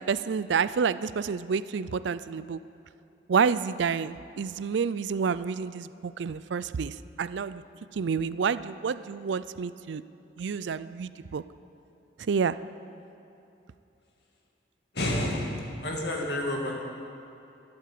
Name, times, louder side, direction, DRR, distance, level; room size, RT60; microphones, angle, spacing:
voice 1, 0.0-2.6 3.3-7.6 7.9-10.0 10.4-11.4 12.3-12.6, right 6 dB, 80° right, 16 dB, 0.4 m, -29 dB
voice 2, 14.9-15.5 15.8-16.7, left 1 dB, 60° left, 0 dB, 2.2 m, -29 dB
12.5 x 11.5 x 7.6 m, 2.7 s
head